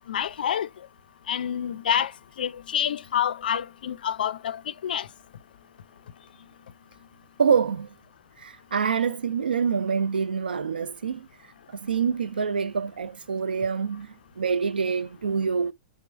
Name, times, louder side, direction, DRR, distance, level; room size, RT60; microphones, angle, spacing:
voice 1, 0.1-0.7 1.3-2.1 2.4-5.1, left 9 dB, 75° left, 0.4 m, -27 dB
voice 2, 7.4-7.9 8.4-11.3 11.7-15.7, right 6 dB, 85° right, 0.5 m, -26 dB
6.0 x 2.0 x 4.4 m
hypercardioid pair, 105°, 5 cm